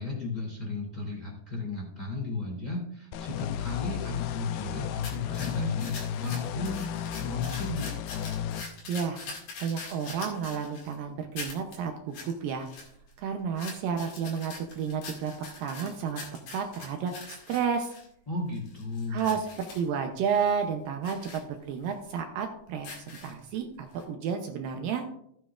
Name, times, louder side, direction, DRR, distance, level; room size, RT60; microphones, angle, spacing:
voice 1, 0.0-7.9 18.3-19.3, left 3 dB, 10° left, -3 dB, 3.0 m, -34 dB
sound 1, 3.1-8.6, left 9 dB, 85° left, 2.4 m, -34 dB
sound 2, 5.0-10.9 11.4-11.8 12.1-12.3 12.6-13.2 13.6-18.1 18.5-19.9 20.3-20.5 21.0-21.4 21.9-22.0 22.7-23.6 24.0-24.1, left 3 dB, 65° left, 3.8 m, -43 dB
voice 2, 8.9-9.2 9.6-12.7 13.2-15.3 15.6-16.2 16.5-17.9 19.1-22.9 23.2-25.1, right 6 dB, 75° right, 4 dB, 2.4 m, -31 dB
15.0 x 9.2 x 2.5 m, 0.71 s
omnidirectional pair, 4.3 m